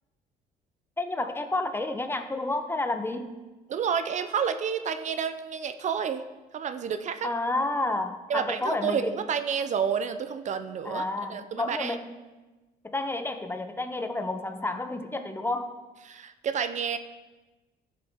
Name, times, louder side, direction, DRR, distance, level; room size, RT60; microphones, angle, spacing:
voice 1, 1.0-3.4 7.2-9.2 10.8-12.2 12.8-15.8, left 2 dB, 15° left, 8 dB, 0.7 m, -30 dB
voice 2, 3.7-6.2 6.5-7.3 8.3-11.0 11.3-12.0 16.0-17.0, right 7 dB, 45° right, 10 dB, 0.6 m, -29 dB
14.0 x 6.7 x 3.6 m, 1.2 s
cardioid pair, 110°, 17 cm